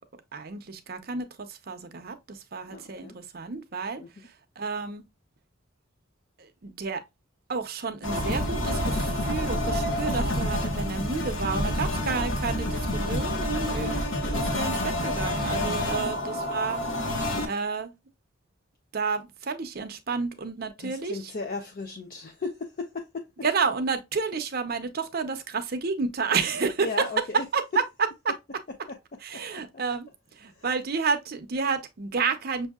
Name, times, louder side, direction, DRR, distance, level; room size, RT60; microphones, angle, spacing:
voice 1, 0.3-4.0 4.6-5.0 6.4-7.0 7.5-16.8 17.5-17.9 18.9-21.3 23.4-27.1 27.5-27.6 29.2-30.1 30.3-32.7, right 5 dB, 50° right, 0.7 m, -30 dB
voice 2, 2.7-3.2 4.0-4.1 13.8-14.2 15.9-16.1 20.8-23.3 26.8-27.5 28.9-29.0 29.3-29.6 30.5-30.7, left 3 dB, 45° left, 0.5 m, -36 dB
sound 1, 8.0-17.4, left 1 dB, 70° left, 0.9 m, -28 dB
6.2 x 2.7 x 2.3 m
head